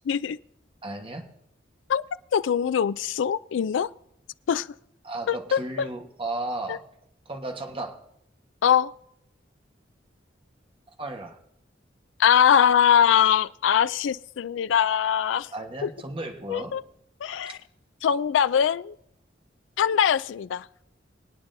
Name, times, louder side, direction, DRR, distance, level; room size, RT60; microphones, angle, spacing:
voice 1, 0.1-0.4 1.9-2.0 2.3-3.9 4.5-4.7 5.3-5.9 6.7-6.8 8.6-8.9 12.2-15.5 15.8-15.9 16.5-16.8 17.2-17.6 18.0-19.0 19.8-20.7, left 8 dB, 90° left, 0.3 m, -22 dB
voice 2, 0.8-1.3 5.0-6.8 7.2-8.0 11.0-11.4 15.5-16.8 17.5-17.6, right 2 dB, 30° right, 1.2 m, -34 dB
23.5 x 9.6 x 2.6 m
head